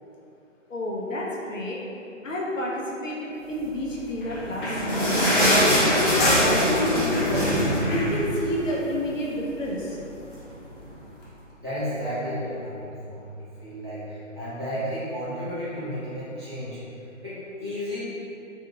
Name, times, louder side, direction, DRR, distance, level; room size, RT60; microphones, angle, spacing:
voice 1, 0.7-1.8 2.2-5.2 5.5-7.6 7.9-10.0, left 1 dB, 75° left, -3 dB, 0.7 m, -30 dB
sound 1, 4.2-8.9 9.3-9.4 9.6-9.8 10.5-10.6, equal, 40° left, 0.8 m, -22 dB
voice 2, 11.6-16.8 17.2-18.0, equal, 20° right, -14 dB, 0.5 m, -33 dB
2.9 x 2.5 x 2.2 m, 2.7 s
figure-of-eight pair, 145°, 39 cm